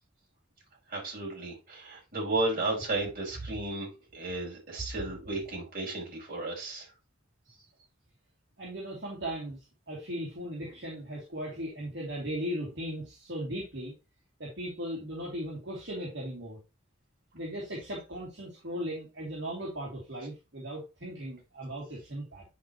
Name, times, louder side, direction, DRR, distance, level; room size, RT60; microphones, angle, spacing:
voice 1, 0.9-6.9, right 2 dB, 45° right, 5.3 m, -33 dB
voice 2, 8.6-13.9 14.4-16.6 17.3-22.4, equal, 60° right, 2.8 m, -37 dB
10.0 x 4.7 x 3.0 m
head